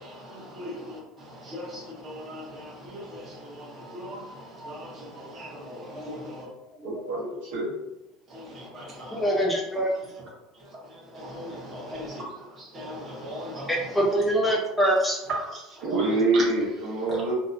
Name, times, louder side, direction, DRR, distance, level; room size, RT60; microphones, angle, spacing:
voice 1, 0.0-6.5 8.3-9.5 9.9-14.2 15.3-16.4 17.1-17.2, equal, 25° right, -4 dB, 0.7 m, -39 dB
voice 2, 6.8-7.7 15.8-17.3, right 2 dB, 65° right, -7 dB, 0.7 m, -26 dB
voice 3, 9.1-9.9 13.7-15.2, right 1 dB, 5° left, -1 dB, 0.4 m, -24 dB
2.6 x 2.1 x 2.5 m, 0.92 s
cardioid pair, 165°, 0 cm